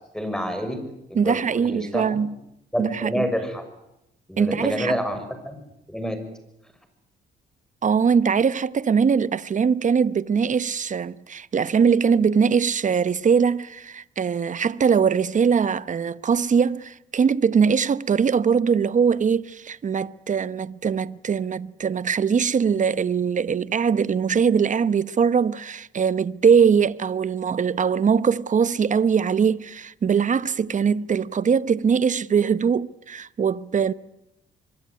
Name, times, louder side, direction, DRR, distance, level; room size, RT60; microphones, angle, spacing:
voice 1, 0.1-2.2 2.7-3.6 4.3-5.6 5.9-6.2, equal, 5° left, 6.4 m, -28 dB
voice 2, 1.2-2.3 2.8-3.2 4.4-5.0 7.8-33.9, right 6 dB, 40° right, 1.0 m, -21 dB
24.5 x 22.5 x 9.6 m
cardioid pair, 90°, 20 cm